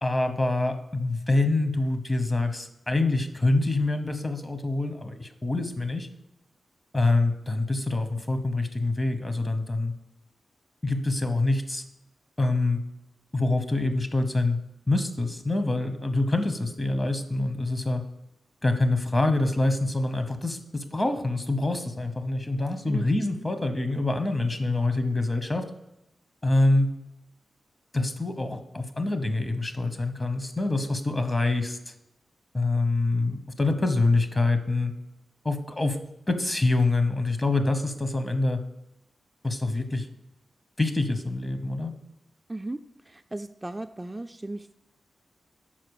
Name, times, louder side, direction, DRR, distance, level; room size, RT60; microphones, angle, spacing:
voice 1, 0.0-6.1 6.9-9.9 10.8-11.8 12.4-12.8 13.3-14.6 14.9-18.0 18.6-25.7 26.4-26.9 27.9-31.9 32.5-34.9 35.4-36.0 36.3-38.6 39.4-40.1 40.8-41.9, left 2 dB, 30° left, 8 dB, 0.9 m, -25 dB
voice 2, 43.1-44.7, right 2 dB, 20° right, 7 dB, 0.3 m, -35 dB
5.8 x 4.7 x 4.7 m, 0.86 s
cardioid pair, 45°, 0 cm